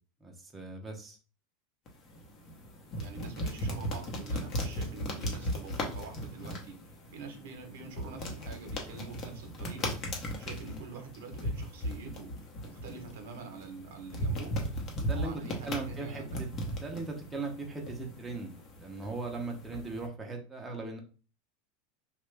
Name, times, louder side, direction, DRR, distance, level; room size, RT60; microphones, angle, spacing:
voice 1, 0.2-1.2 15.0-16.5 16.8-18.5 18.8-21.0, right 3 dB, 10° right, 1 dB, 0.6 m, -38 dB
sound 1, 1.9-20.1, equal, 35° left, 0.8 m, -37 dB
voice 2, 3.0-6.8 7.1-9.9 10.4-12.3 12.6-14.6 15.1-16.4, right 4 dB, 80° right, 4 dB, 0.8 m, -45 dB
3.0 x 2.2 x 3.2 m, 0.36 s
supercardioid pair, 135°, 0 cm